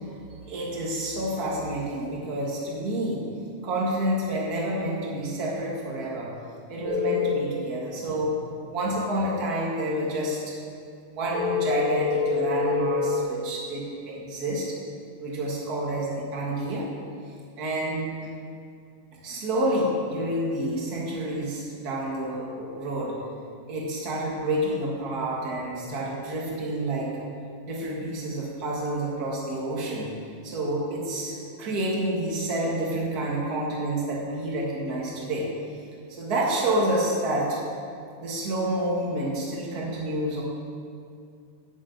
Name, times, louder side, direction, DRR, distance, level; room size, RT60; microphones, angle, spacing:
voice 1, 0.5-3.2 3.6-6.3 6.7-8.4 8.7-10.6 11.1-14.7 15.2-16.9 17.6-18.3 19.2-23.1 23.7-27.1 27.6-30.1 30.4-35.5 36.1-37.6 38.2-40.4, right 1 dB, 35° right, -3 dB, 1.7 m, -29 dB
sound 1, 6.8-7.4 11.3-13.2, left 5 dB, 60° right, 1.4 m, -25 dB
8.1 x 7.6 x 8.1 m, 2.4 s
omnidirectional pair, 4.1 m